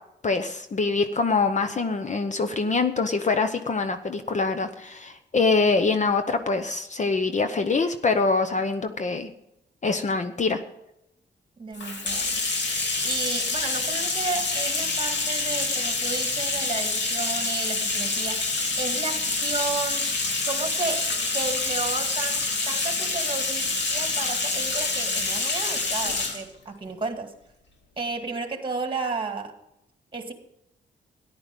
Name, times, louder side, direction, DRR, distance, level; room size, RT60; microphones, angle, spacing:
voice 1, 0.2-9.3 9.8-10.6, left 4 dB, 40° left, 0.9 m, -24 dB
voice 2, 11.6-12.3 13.0-18.5 18.8-20.1 20.4-21.0 21.3-27.3 28.0-29.5 30.1-30.3, right 3 dB, 25° right, 2.0 m, -33 dB
Bathtub (filling or washing), 11.7-26.4, left 3 dB, 70° left, 2.4 m, -27 dB
14.0 x 10.5 x 5.3 m
cardioid pair, 100°, 19 cm